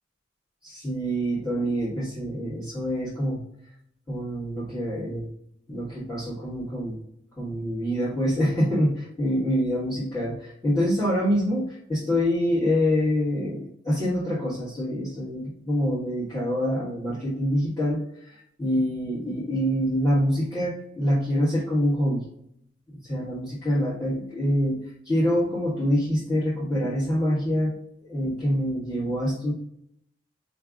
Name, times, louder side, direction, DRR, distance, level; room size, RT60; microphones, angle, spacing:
voice 1, 0.6-3.4 4.1-5.3 5.7-7.0 7.4-22.3 22.9-27.7 28.0-29.5, equal, 20° left, -11 dB, 1.5 m, -26 dB
4.8 x 3.3 x 2.4 m, 0.72 s
head